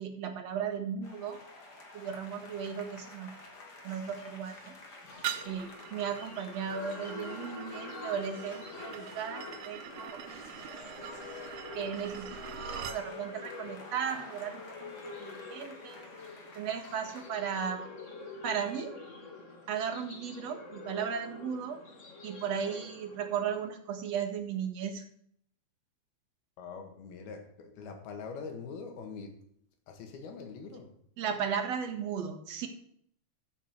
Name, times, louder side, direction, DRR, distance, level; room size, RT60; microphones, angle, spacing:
voice 1, 0.0-1.4 1.9-3.3 3.8-4.7 5.4-10.6 11.0-11.2 11.7-16.1 16.5-17.9 18.4-18.9 19.7-21.8 22.2-25.1 31.2-32.7, right 7 dB, 55° right, 5 dB, 2.1 m, -36 dB
sound 1, 1.0-17.3, left 2 dB, 40° left, 1.5 m, -51 dB
sound 2, 5.1-23.7, left 3 dB, 60° left, 0.7 m, -46 dB
sound 3, 5.2-13.0, right 11 dB, 80° right, 2.7 m, -43 dB
voice 2, 26.6-29.4 29.9-30.9, left 5 dB, 75° left, 5 dB, 3.8 m, -43 dB
14.0 x 6.7 x 7.8 m, 0.66 s
omnidirectional pair, 4.4 m